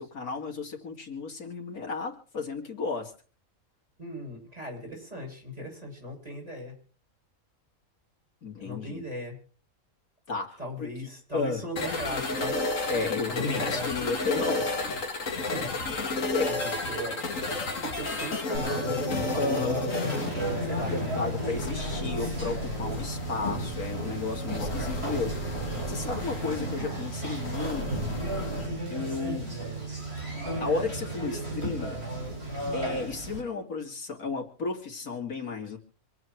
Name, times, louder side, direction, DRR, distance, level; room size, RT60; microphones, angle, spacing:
voice 1, 0.0-3.1 8.4-9.1 10.3-10.9 11.3-11.6 12.9-14.8 16.3-16.5 19.4-19.9 20.9-25.6 25.9-28.0 28.9-29.5 30.6-32.0 32.7-35.8, left 4 dB, 90° left, 1 dB, 3.2 m, -33 dB
voice 2, 4.0-6.7 8.6-9.4 10.6-12.6 13.3-13.9 15.4-17.2 17.8-21.2 25.9-26.1 29.2-29.5, left 1 dB, 25° right, -2 dB, 8.0 m, -38 dB
sound 1, 11.8-28.7, left 2 dB, 60° left, 2.4 m, -33 dB
Conversation, 18.5-33.4, right 2 dB, 45° right, 7.3 m, -34 dB
26.5 x 8.9 x 4.6 m, 0.40 s
omnidirectional pair, 1.5 m